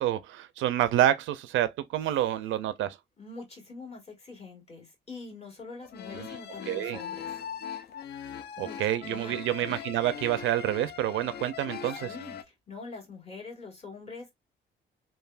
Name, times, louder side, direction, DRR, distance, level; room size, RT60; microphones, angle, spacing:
voice 1, 0.0-3.0 6.1-6.3 6.7-7.0 8.6-12.1, right 12 dB, 80° right, 0.4 m, -28 dB
voice 2, 3.2-7.3 8.6-8.8 9.0-9.4 12.0-14.3, left 3 dB, 30° left, 1.6 m, -44 dB
sound 1, 5.8-12.4, left 8 dB, 55° left, 0.4 m, -40 dB
3.3 x 2.2 x 2.3 m
cardioid pair, 90°, 20 cm